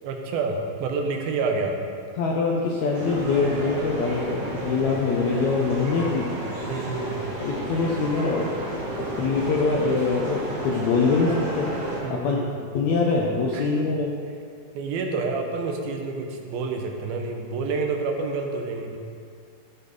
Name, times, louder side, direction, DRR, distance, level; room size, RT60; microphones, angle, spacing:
voice 1, 0.0-1.8 6.6-7.2 12.0-12.6 13.5-13.7 14.7-19.0, right 4 dB, 75° right, 2 dB, 2.8 m, -28 dB
voice 2, 2.2-6.3 7.4-8.5 9.0-11.7 12.1-12.4 12.7-14.1, left 4 dB, 75° left, -2 dB, 1.7 m, -24 dB
sound 1, 2.9-12.0, right 1 dB, 35° right, 2.3 m, -32 dB
14.5 x 6.6 x 5.3 m, 2.3 s
omnidirectional pair, 4.4 m